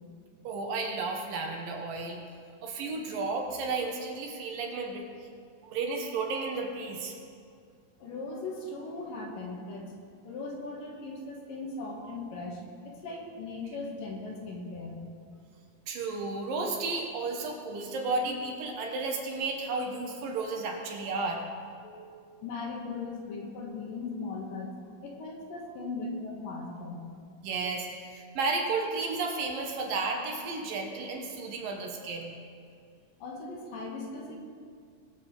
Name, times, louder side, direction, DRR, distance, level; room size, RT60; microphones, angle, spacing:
voice 1, 0.4-2.2 2.6-5.0 5.6-7.1 15.9-21.4 27.4-32.3, right 3 dB, 70° right, 2 dB, 2.8 m, -33 dB
voice 2, 8.0-9.9 10.2-15.0 21.8-22.1 22.4-24.7 25.0-27.1 33.2-34.4, left 3 dB, 70° left, -1 dB, 3.1 m, -38 dB
20.5 x 7.1 x 4.8 m, 2.3 s
omnidirectional pair, 4.2 m